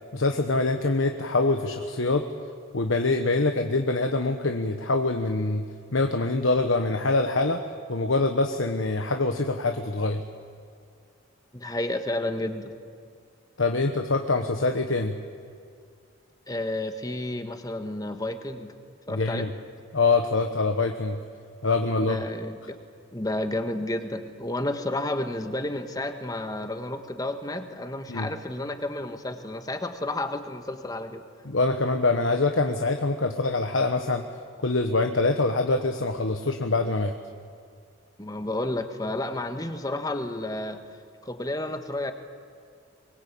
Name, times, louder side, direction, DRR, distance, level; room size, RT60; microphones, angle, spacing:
voice 1, 0.1-2.2 2.7-5.6 5.9-7.6 7.9-10.2 13.6-15.1 19.1-19.5 19.9-21.2 21.6-22.2 28.1-28.3 31.4-34.2 34.6-37.1, left 3 dB, 80° left, 5 dB, 1.2 m, -24 dB
voice 2, 11.5-12.7 16.5-18.7 19.1-19.5 22.0-22.8 23.1-31.2 38.2-40.8 41.2-42.1, left 1 dB, 20° left, 7 dB, 1.5 m, -31 dB
24.0 x 21.5 x 8.6 m, 2.2 s
head